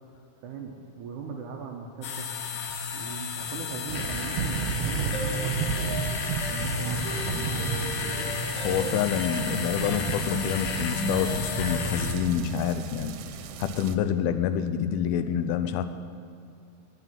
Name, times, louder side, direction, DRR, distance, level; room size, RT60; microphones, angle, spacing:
voice 1, 0.4-2.3 2.9-6.2 6.5-8.4, right 5 dB, 75° right, 1 dB, 1.9 m, -40 dB
sound 1, 2.0-12.1, left 6 dB, 70° left, 1.9 m, -33 dB
sound 2, 3.9-13.9, right 7 dB, 90° right, 2.6 m, -33 dB
sound 3, 5.1-12.0, left 1 dB, 50° left, 1.3 m, -36 dB
voice 2, 8.6-13.2 13.6-15.8, left 9 dB, 85° left, 10 dB, 2.5 m, -27 dB
9.9 x 9.0 x 9.3 m, 2.3 s
omnidirectional pair, 4.4 m